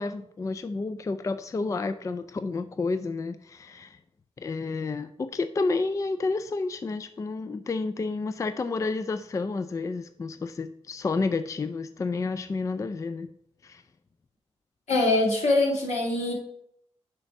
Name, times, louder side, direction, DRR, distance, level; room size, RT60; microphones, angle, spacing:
voice 1, 0.0-4.0 4.4-13.3 13.6-13.8, left 3 dB, 30° left, 11 dB, 0.3 m, -30 dB
voice 2, 14.9-16.3, left 2 dB, 80° left, -3 dB, 2.2 m, -23 dB
6.7 x 3.4 x 5.8 m, 0.74 s
cardioid pair, 75°, 11 cm